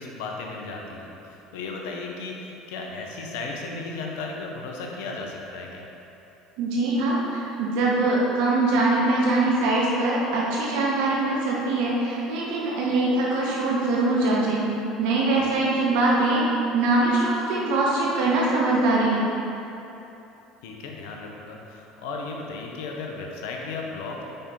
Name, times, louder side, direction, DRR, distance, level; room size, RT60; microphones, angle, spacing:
voice 1, 0.0-5.9 15.4-15.7 20.6-24.2, left 3 dB, 70° left, 0 dB, 0.8 m, -35 dB
voice 2, 6.6-14.7 15.0-19.2, right 2 dB, 70° right, -4 dB, 1.0 m, -23 dB
5.5 x 5.2 x 4.2 m, 3.0 s
hypercardioid pair, 70°, 0 cm